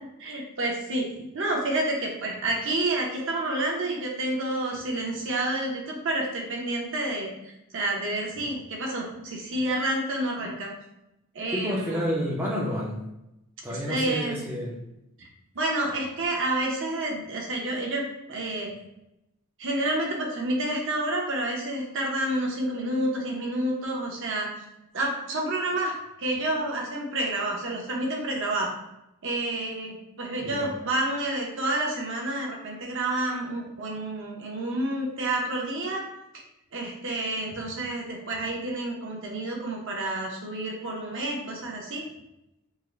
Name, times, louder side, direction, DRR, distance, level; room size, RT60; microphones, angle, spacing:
voice 1, 0.2-1.1 1.3-10.7 11.3-12.0 13.7-14.4 15.2-15.3 15.5-18.7 19.6-24.5 24.9-25.9 26.2-28.7 29.2-36.0 36.7-42.0, right 1 dB, 55° right, -1 dB, 0.7 m, -29 dB
voice 2, 11.5-13.0 13.6-14.8 30.4-30.7, equal, 10° right, -5 dB, 0.4 m, -30 dB
3.6 x 2.0 x 3.1 m, 0.88 s
head